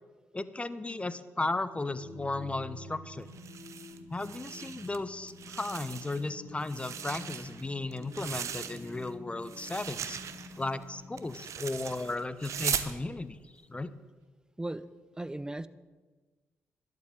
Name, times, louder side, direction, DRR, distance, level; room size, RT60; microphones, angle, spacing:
voice 1, 0.3-3.3 4.1-10.2 10.6-13.4 13.7-13.9, left 2 dB, 20° left, 15 dB, 0.9 m, -35 dB
sound 1, 1.7-11.6, left 2 dB, 80° left, 2.1 m, -51 dB
sound 2, 3.3-11.4, left 3 dB, 60° left, 1.5 m, -52 dB
sound 3, 3.3-5.0 5.3-6.3 6.6-9.1 9.4-12.9, right 8 dB, 65° right, 0.9 m, -39 dB
voice 2, 14.6-14.9 15.2-15.7, right 1 dB, 15° right, 16 dB, 0.7 m, -36 dB
11.5 x 7.8 x 9.1 m, 1.3 s
supercardioid pair, 50°, 5 cm